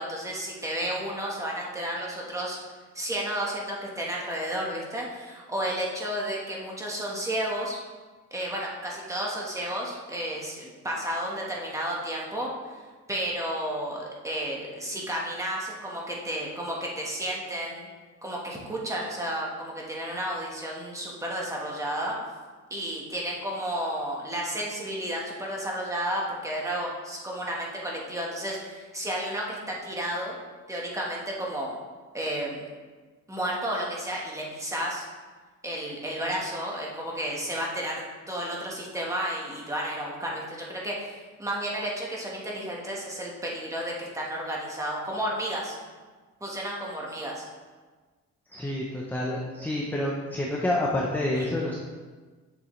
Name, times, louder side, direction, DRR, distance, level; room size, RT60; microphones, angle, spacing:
voice 1, 0.0-2.6 2.9-7.8 8.3-12.8 13.1-17.9 18.2-22.2 22.7-30.4 30.7-31.8 32.1-32.6 33.3-35.1 35.6-45.8 46.4-47.4 51.3-51.5, right 1 dB, 10° right, -3 dB, 1.3 m, -32 dB
voice 2, 48.5-51.8, left 1 dB, 5° left, -2 dB, 0.6 m, -28 dB
8.1 x 6.8 x 3.2 m, 1.4 s
cardioid pair, 165°, 31 cm